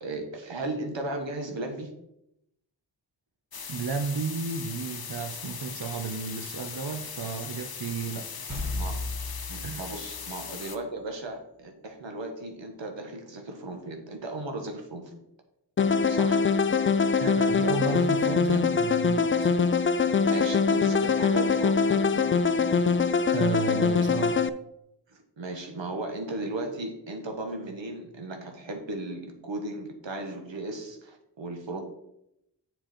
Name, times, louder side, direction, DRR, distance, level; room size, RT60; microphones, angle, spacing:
voice 1, 0.0-1.9 8.7-9.0 9.5-15.2 16.1-16.4 20.2-22.3 25.1-31.8, right 2 dB, 85° right, 4 dB, 1.4 m, -36 dB
sound 1, 3.5-10.8, left 6 dB, 55° left, 0.8 m, -39 dB
voice 2, 3.7-8.3 9.6-9.9 17.2-19.5 23.3-24.5, right 5 dB, 60° right, 6 dB, 0.7 m, -33 dB
sound 2, 8.5-10.5, left 2 dB, 40° right, 1.9 m, -35 dB
sound 3, 15.8-24.5, left 5 dB, 30° left, 0.4 m, -23 dB
8.8 x 5.2 x 4.3 m, 0.82 s
wide cardioid pair, 75°, 44 cm